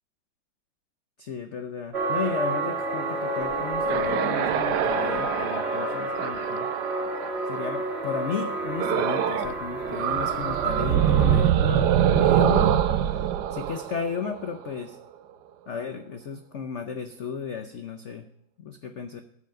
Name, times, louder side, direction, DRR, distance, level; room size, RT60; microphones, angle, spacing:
voice 1, 1.2-6.7 7.5-12.8 13.5-15.0 15.7-18.2 18.6-19.2, left 6 dB, 85° left, 7 dB, 0.6 m, -34 dB
sound 1, 1.9-11.5, right 2 dB, 30° right, 2.3 m, -30 dB
sound 2, 3.5-7.7 8.8-9.5 9.8-14.7, right 10 dB, 70° right, 1.1 m, -24 dB
14.0 x 5.1 x 7.7 m, 0.71 s
omnidirectional pair, 2.2 m